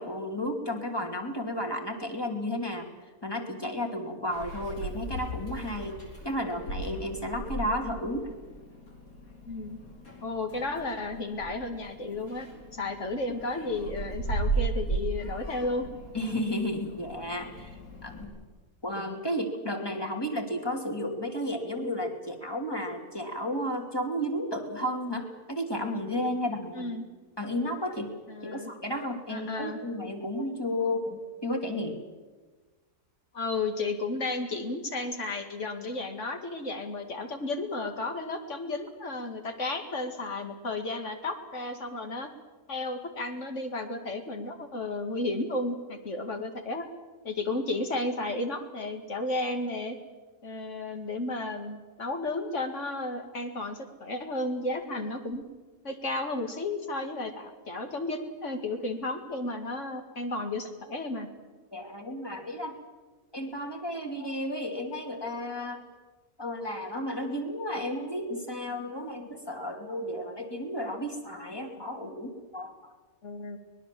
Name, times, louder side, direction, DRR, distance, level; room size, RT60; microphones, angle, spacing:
voice 1, 0.0-2.9 3.2-6.0 6.2-8.3 16.1-18.3 18.8-26.9 27.4-28.1 28.4-32.0 61.7-62.8 63.3-65.8 66.4-72.9, left 1 dB, 15° left, 3 dB, 2.7 m, -33 dB
Meow, 4.3-18.2, right 2 dB, 90° left, 5.1 m, -37 dB
voice 2, 9.5-9.8 10.2-15.9 26.7-27.1 28.3-28.7 29.3-29.8 33.3-42.3 42.7-46.9 47.2-50.0 50.4-55.4 55.8-61.3 72.0-72.1 73.2-73.6, left 2 dB, 55° left, 6 dB, 2.5 m, -33 dB
24.0 x 20.5 x 7.6 m, 1.3 s
omnidirectional pair, 1.5 m